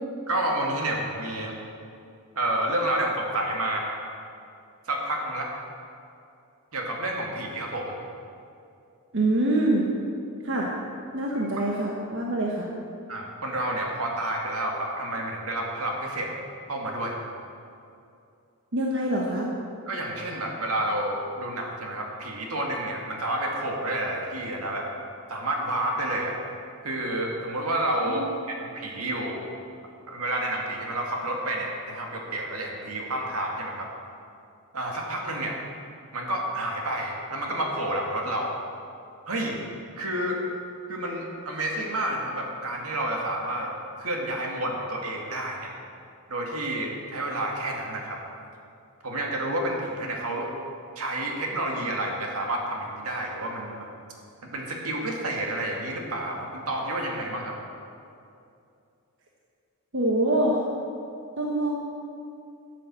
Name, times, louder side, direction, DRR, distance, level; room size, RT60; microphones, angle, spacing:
voice 1, 0.3-1.6 2.4-3.9 4.9-5.5 6.7-8.0 11.3-11.4 13.1-16.3 16.7-17.2 19.9-24.9 25.3-26.4 26.8-29.5 30.1-33.9 34.7-35.6 36.1-38.5 39.3-39.6 40.0-40.4 40.9-45.8 46.3-48.2 49.0-50.5 51.0-53.9 54.4-57.6, right 1 dB, 80° right, 0 dB, 2.3 m, -30 dB
voice 2, 9.1-9.9 10.4-10.7 11.1-12.7 18.7-19.5 28.1-28.3 59.9-60.6 61.4-61.8, right 1 dB, 55° right, -2 dB, 1.3 m, -25 dB
13.0 x 7.5 x 7.5 m, 2.5 s
head